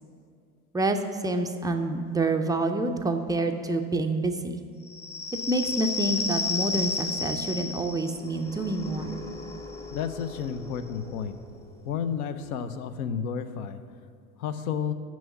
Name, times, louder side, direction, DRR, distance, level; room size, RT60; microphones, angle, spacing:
voice 1, 0.7-4.6 5.5-9.2, right 2 dB, 10° right, 5 dB, 0.3 m, -27 dB
sound 1, 4.9-12.1, left 4 dB, 5° left, 0.8 m, -34 dB
voice 2, 9.9-11.3 11.8-13.8 14.4-14.9, left 7 dB, 70° left, 10 dB, 0.7 m, -31 dB
6.3 x 6.2 x 7.0 m, 2.3 s
hypercardioid pair, 85°, 44 cm